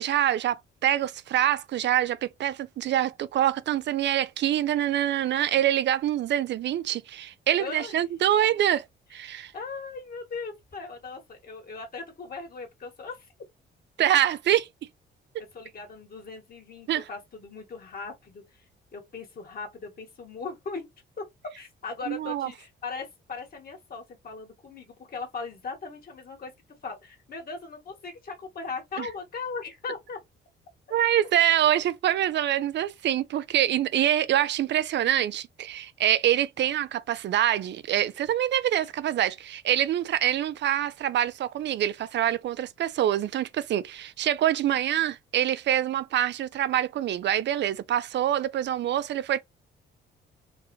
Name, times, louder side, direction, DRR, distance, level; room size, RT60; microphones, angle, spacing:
voice 1, 0.0-8.8 9.1-9.5 14.0-14.7 16.9-17.0 22.1-22.5 29.0-29.1 30.9-49.4, right 11 dB, 65° right, 0.5 m, -25 dB
voice 2, 7.6-8.0 8.4-8.6 9.3-13.3 15.4-18.6 18.9-20.9 21.6-26.5 26.8-30.2, left 4 dB, 50° left, 2.0 m, -39 dB
4.5 x 2.6 x 3.2 m
cardioid pair, 90°, 20 cm